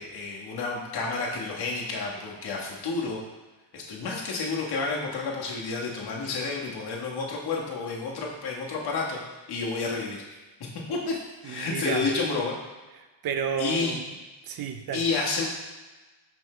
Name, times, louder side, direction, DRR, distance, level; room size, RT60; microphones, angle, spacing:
voice 1, 0.0-3.2 3.7-9.2 9.5-10.2 10.9-11.2 11.4-12.5 13.6-13.9 14.9-15.5, left 4 dB, 55° left, -3 dB, 1.5 m, -30 dB
voice 2, 11.4-12.1 13.0-14.1 14.4-15.1, right 7 dB, 50° right, 7 dB, 0.6 m, -32 dB
5.6 x 5.3 x 3.3 m, 1.2 s
cardioid pair, 115°, 47 cm